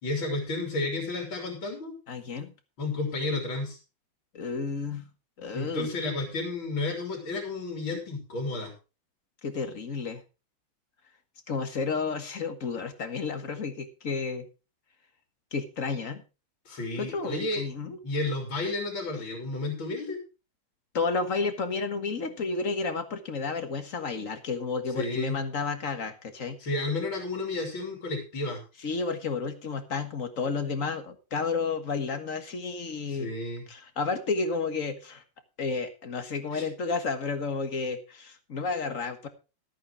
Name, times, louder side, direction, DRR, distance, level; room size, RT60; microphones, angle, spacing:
voice 1, 0.0-2.0 2.8-3.8 5.5-8.7 16.7-17.6 18.0-20.2 25.0-25.4 26.6-28.6 33.1-33.6 36.5-36.7, left 2 dB, 70° left, 2 dB, 3.8 m, -32 dB
voice 2, 2.1-2.5 4.3-5.0 5.4-5.9 9.4-10.2 11.5-14.5 15.5-16.2 16.7-18.0 20.9-26.6 28.8-33.3 33.7-35.2 35.6-39.3, left 4 dB, 40° left, 8 dB, 1.8 m, -31 dB
14.0 x 8.9 x 4.6 m, 0.32 s
omnidirectional pair, 2.3 m